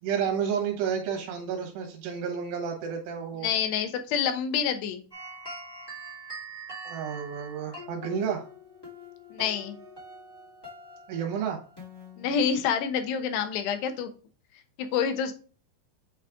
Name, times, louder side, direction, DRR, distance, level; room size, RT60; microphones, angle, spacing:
voice 1, 0.0-3.5 6.8-8.5 11.1-11.6, right 7 dB, 70° right, 1 dB, 3.2 m, -31 dB
voice 2, 3.4-5.0 9.3-9.8 12.2-14.1 14.8-15.3, left 7 dB, 75° left, 6 dB, 2.7 m, -27 dB
sound 1, 5.1-12.6, right 1 dB, 15° left, 0.9 m, -44 dB
8.4 x 3.2 x 3.5 m, 0.38 s
omnidirectional pair, 5.2 m